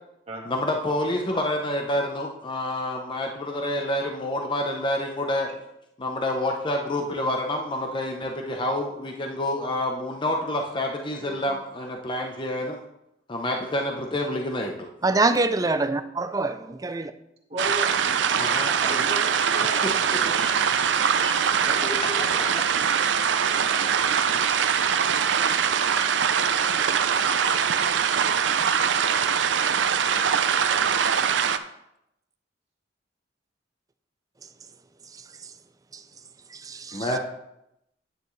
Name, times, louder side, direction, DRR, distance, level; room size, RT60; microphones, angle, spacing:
voice 1, 0.5-5.5 6.0-12.8 13.3-14.7 18.3-19.0 19.8-20.2 22.4-22.5 36.9-37.2, left 1 dB, 25° left, 2 dB, 0.8 m, -28 dB
voice 2, 11.2-11.6 15.6-15.7 17.5-18.3 18.9-20.5 21.2-22.5 24.8-25.1, equal, 35° right, -1 dB, 1.6 m, -38 dB
voice 3, 15.0-17.1 18.7-18.9 35.9-36.0 36.5-37.2, right 3 dB, 20° right, 10 dB, 0.5 m, -25 dB
sound 1, 17.6-31.6, right 7 dB, 90° right, 0.5 m, -23 dB
9.6 x 9.3 x 3.2 m, 0.84 s
head